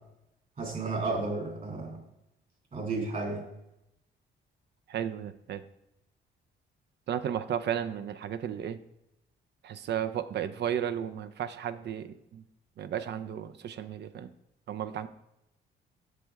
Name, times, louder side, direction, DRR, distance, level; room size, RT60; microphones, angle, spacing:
voice 1, 0.6-2.0 2.7-3.5, right 3 dB, 40° right, 1 dB, 2.7 m, -32 dB
voice 2, 4.9-5.6 7.1-8.8 9.6-12.4 12.8-14.3 14.7-15.1, right 9 dB, 60° right, 11 dB, 0.5 m, -34 dB
7.6 x 6.4 x 3.5 m, 0.85 s
cardioid pair, 90°, 20 cm